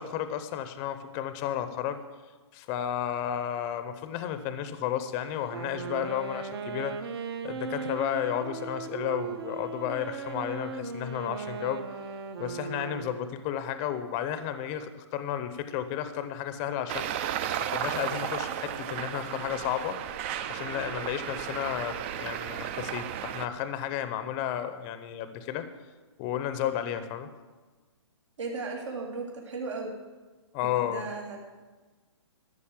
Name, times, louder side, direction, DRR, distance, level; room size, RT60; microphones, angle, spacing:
voice 1, 0.0-2.0 2.5-7.0 7.4-11.8 12.4-17.1 17.7-20.0 20.5-25.7 26.2-27.3 30.5-31.1, left 10 dB, 25° left, 11 dB, 0.6 m, -32 dB
Wind instrument woodwind instrument, 5.5-13.3, right 6 dB, 55° right, 1.0 m, -37 dB
Traffic noise roadway noise, 16.9-23.5, right 10 dB, 25° right, 0.4 m, -34 dB
voice 2, 28.4-29.9 30.9-31.4, right 3 dB, 75° right, 0 dB, 2.3 m, -35 dB
13.0 x 6.3 x 7.4 m, 1.3 s
hypercardioid pair, 155°, 15 cm